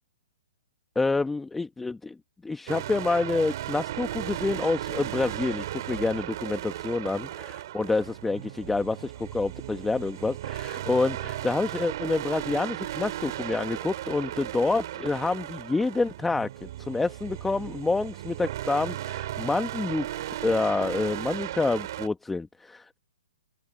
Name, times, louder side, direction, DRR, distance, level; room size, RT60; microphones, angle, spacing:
voice 1, 0.9-2.1 2.4-7.3 7.7-23.0, left 3 dB, 5° left, 1.2 m, -28 dB
sound 1, 2.7-22.1, right 13 dB, 50° right, 4.0 m, -36 dB
open air
hypercardioid pair, 140°, 3 cm